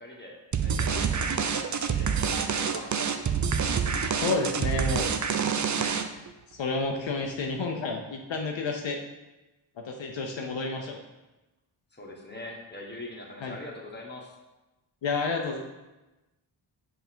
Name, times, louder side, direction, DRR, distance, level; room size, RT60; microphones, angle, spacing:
voice 1, 0.0-2.9 11.9-14.4, left 2 dB, 20° left, -1 dB, 1.3 m, -43 dB
sound 1, 0.5-6.3, right 6 dB, 40° right, 0.5 m, -27 dB
voice 2, 4.1-5.1 6.6-9.0 9.8-11.0 13.4-13.5 15.0-15.6, left 3 dB, 65° left, 1 dB, 0.7 m, -30 dB
5.7 x 3.8 x 4.4 m, 1.1 s
cardioid pair, 65°, 49 cm